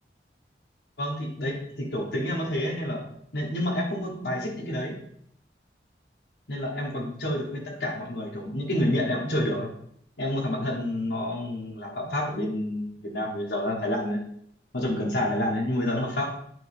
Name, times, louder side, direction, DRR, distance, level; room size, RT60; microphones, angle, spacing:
voice 1, 1.0-3.0 3.3-4.9 6.5-9.7 10.2-14.2 14.7-16.3, left 1 dB, 75° left, -3 dB, 1.2 m, -29 dB
9.1 x 3.2 x 3.5 m, 0.69 s
head